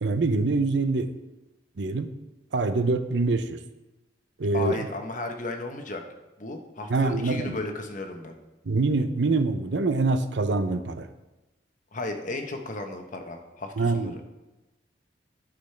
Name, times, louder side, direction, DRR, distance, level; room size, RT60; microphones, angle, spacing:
voice 1, 0.0-1.1 1.8-2.1 2.5-3.6 4.4-4.8 6.9-7.6 8.7-11.1 13.8-14.2, right 3 dB, 65° right, 10 dB, 0.6 m, -25 dB
voice 2, 4.5-6.0 6.4-8.4 11.9-14.1, left 2 dB, 45° left, 4 dB, 0.9 m, -34 dB
11.5 x 6.3 x 3.3 m, 1.0 s
head